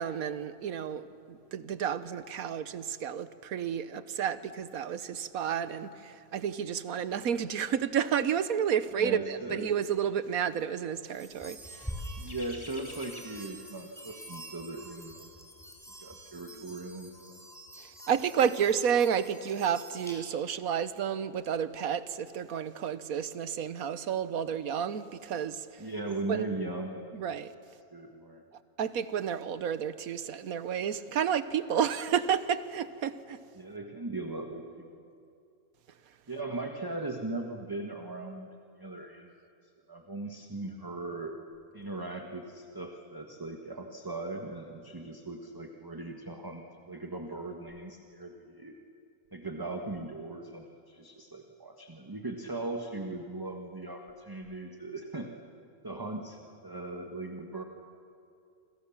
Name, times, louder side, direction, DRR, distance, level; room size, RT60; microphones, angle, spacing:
voice 1, 0.0-11.9 17.8-25.7 26.3-26.5 27.1-27.5 28.8-33.4, right 8 dB, 80° right, 14 dB, 1.4 m, -31 dB
voice 2, 9.0-9.7 12.2-15.3 16.0-17.4 25.8-27.2 27.9-28.4 33.6-34.9 36.3-38.5 38.8-39.3 39.9-41.4 41.7-48.8 49.3-55.3 55.8-57.6, right 2 dB, 15° right, 3 dB, 1.4 m, -39 dB
sound 1, 11.1-20.6, equal, ahead, 4.1 m, -46 dB
sound 2, 11.3-16.4 16.7-16.9, left 1 dB, 25° left, 2.4 m, -50 dB
28.0 x 26.5 x 7.2 m, 2.5 s
omnidirectional pair, 1.5 m